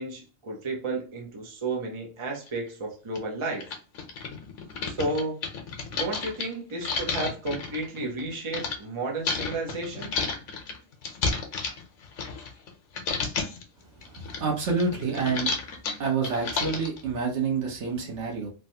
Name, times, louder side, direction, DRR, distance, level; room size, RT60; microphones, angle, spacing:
voice 1, 0.0-3.7 4.8-5.4 5.9-10.1, right 2 dB, 30° right, -1 dB, 0.7 m, -32 dB
sound 1, 2.5-2.6 3.2-3.3 3.5-8.8 9.2-12.7 12.9-13.6 14.0-17.0, left 4 dB, 85° left, 1.1 m, -31 dB
voice 2, 14.2-15.5 16.0-18.5, right 4 dB, 70° right, 0 dB, 1.1 m, -28 dB
3.1 x 2.3 x 2.6 m, 0.36 s
omnidirectional pair, 1.3 m